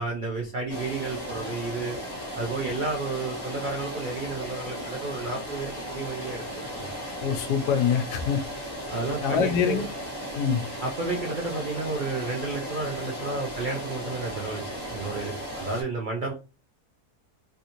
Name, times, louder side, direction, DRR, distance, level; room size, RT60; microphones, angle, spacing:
voice 1, 0.0-2.0 2.3-6.9 8.9-9.9 10.8-16.3, right 3 dB, 85° right, 0.4 m, -32 dB
sound 1, 0.7-15.8, equal, 15° left, 1.4 m, -36 dB
voice 2, 7.2-8.4 9.2-9.8 10.3-10.6, left 7 dB, 85° left, 1.2 m, -24 dB
3.5 x 2.6 x 2.9 m
omnidirectional pair, 1.7 m